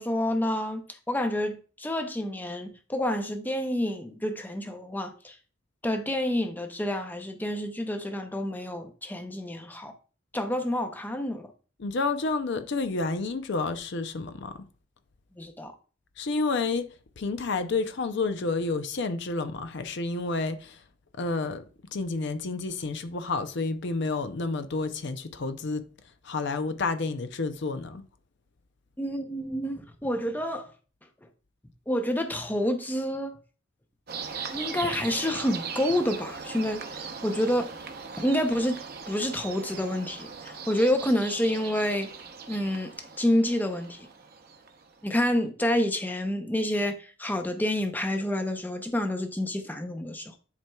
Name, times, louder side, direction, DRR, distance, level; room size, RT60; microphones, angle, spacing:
voice 1, 0.0-5.4 5.8-9.9 10.3-11.5 15.4-15.7 29.0-30.7 31.9-33.4 34.5-37.7 38.2-38.8 39.1-42.1 42.5-44.1 45.0-50.4, left 1 dB, 10° left, 0.6 m, -28 dB
voice 2, 11.8-14.7 16.2-20.8 21.2-21.6 21.9-25.9 26.2-28.1, left 3 dB, 60° left, 0.6 m, -30 dB
sound 1, 34.1-45.0, right 5 dB, 50° right, 0.8 m, -39 dB
10.5 x 4.4 x 2.3 m
head